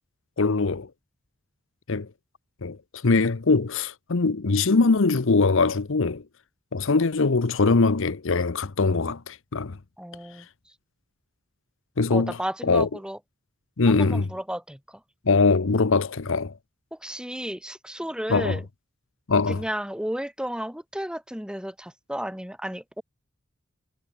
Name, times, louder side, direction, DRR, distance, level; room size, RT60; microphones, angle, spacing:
voice 1, 0.4-0.9 1.9-2.1 2.6-2.8 3.0-6.2 6.7-9.8 12.0-12.4 12.6-12.9 13.8-14.3 15.3-16.5 18.3-18.6 19.3-19.6, left 3 dB, 70° left, 0.8 m, -22 dB
voice 2, 10.0-10.5 12.1-13.2 13.9-15.0 16.9-18.6 19.5-23.0, equal, 5° right, 3.6 m, -33 dB
head